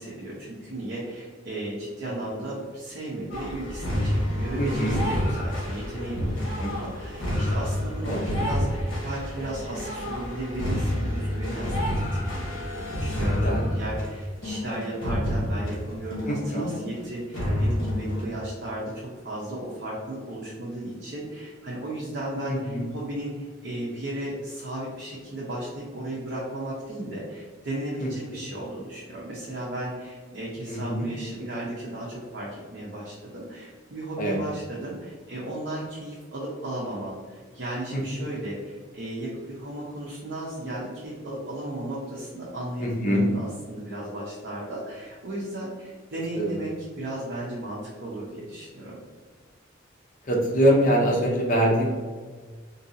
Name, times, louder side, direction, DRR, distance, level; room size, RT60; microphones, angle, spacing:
voice 1, 0.0-6.3 6.6-49.0, right 1 dB, 55° right, -6 dB, 0.7 m, -35 dB
sound 1, 3.3-17.0 17.3-18.2, left 1 dB, 65° left, 1.1 m, -28 dB
voice 2, 4.6-5.0 6.6-6.7 8.1-8.3 13.4-13.7 16.3-16.7 22.5-22.9 28.0-28.1 30.7-31.1 34.2-34.4 37.9-38.0 42.8-43.3 46.4-46.5 50.2-52.0, equal, 45° left, -1 dB, 0.7 m, -24 dB
3.7 x 2.7 x 2.7 m, 1.5 s
head